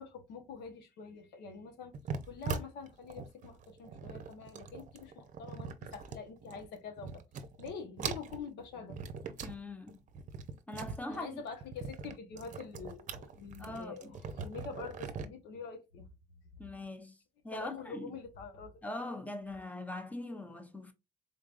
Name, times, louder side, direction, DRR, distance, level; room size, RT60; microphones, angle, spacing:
voice 1, 0.0-2.0 2.3-7.2 7.6-9.0 9.3-9.4 11.1-14.1 14.4-16.1 17.5-18.8, left 5 dB, 85° left, 1.2 m, -45 dB
sound 1, 1.9-6.7 7.0-7.7 8.0-9.6 9.9-15.3, right 5 dB, 50° right, 0.7 m, -42 dB
voice 2, 9.4-10.0 10.7-11.4 13.6-14.2 16.6-17.2 17.4-18.1 18.8-20.9, left 2 dB, 10° left, 0.8 m, -42 dB
3.8 x 3.5 x 2.5 m
cardioid pair, 110°, 17 cm